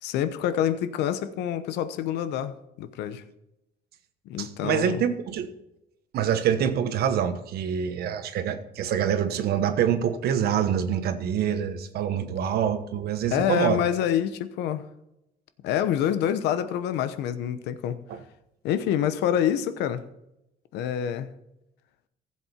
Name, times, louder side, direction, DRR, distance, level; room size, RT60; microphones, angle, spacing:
voice 1, 0.0-3.2 4.3-5.0 13.3-14.9 15.6-18.0 18.6-20.0 20.7-21.3, left 10 dB, 85° left, 11 dB, 0.9 m, -27 dB
voice 2, 4.4-5.5 6.1-13.8 18.1-18.2, right 8 dB, 70° right, 10 dB, 1.2 m, -26 dB
15.0 x 7.6 x 4.4 m, 0.86 s
cardioid pair, 110°, 17 cm